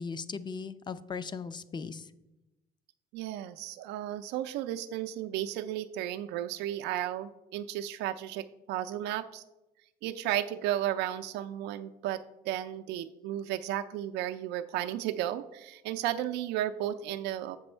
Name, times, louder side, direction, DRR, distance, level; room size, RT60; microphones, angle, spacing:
voice 1, 0.0-2.1, left 5 dB, 25° left, 14 dB, 0.5 m, -38 dB
voice 2, 3.1-9.4 10.0-17.6, right 12 dB, 85° right, 9 dB, 0.4 m, -34 dB
7.9 x 6.1 x 4.3 m, 0.98 s
cardioid pair, 110°, 17 cm